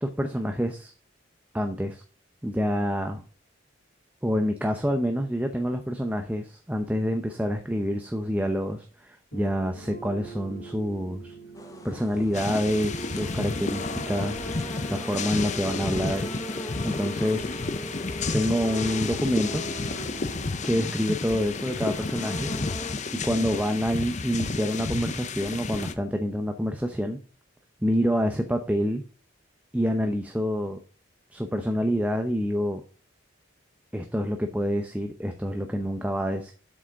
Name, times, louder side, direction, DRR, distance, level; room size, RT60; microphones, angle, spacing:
voice 1, 0.0-0.9 1.5-2.0 2.4-3.2 4.2-11.3 11.8-14.5 14.9-16.3 16.8-17.5 18.3-19.6 20.6-22.5 23.2-27.2 27.8-29.0 29.7-30.8 31.3-32.8 33.9-36.5, equal, 10° right, 5 dB, 0.7 m, -27 dB
sound 1, 9.3-20.5, right 3 dB, 65° left, 3.8 m, -43 dB
sound 2, 11.5-23.0, left 1 dB, 15° left, 1.1 m, -39 dB
sound 3, 12.3-25.9, left 4 dB, 35° left, 0.6 m, -32 dB
7.8 x 6.4 x 3.7 m, 0.37 s
head